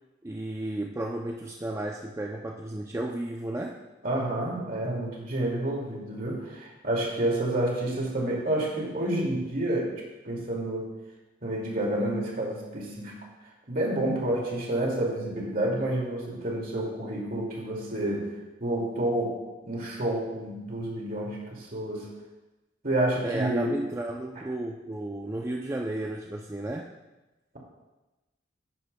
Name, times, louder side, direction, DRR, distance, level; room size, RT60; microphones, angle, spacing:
voice 1, 0.2-3.8 23.2-27.0, right 1 dB, 15° right, 1 dB, 0.4 m, -33 dB
voice 2, 4.0-9.9 10.2-10.9 11.4-13.1 13.7-18.3 18.6-19.4 19.6-22.1 22.8-23.8 24.4-24.5, right 1 dB, 50° right, -2 dB, 2.2 m, -29 dB
10.5 x 9.8 x 2.2 m, 1.1 s
head